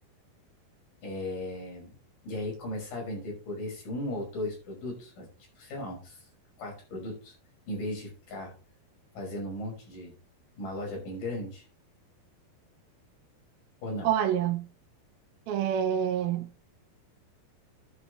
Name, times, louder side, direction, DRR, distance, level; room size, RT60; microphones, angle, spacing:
voice 1, 1.0-2.0 2.2-5.3 5.6-6.3 6.6-7.3 7.7-8.5 9.2-10.1 10.6-11.7 13.8-14.1, left 1 dB, 55° left, 7.2 m, -36 dB
voice 2, 14.0-14.6 15.5-16.5, right 9 dB, 75° right, 2.6 m, -27 dB
11.5 x 9.8 x 3.2 m
omnidirectional pair, 4.7 m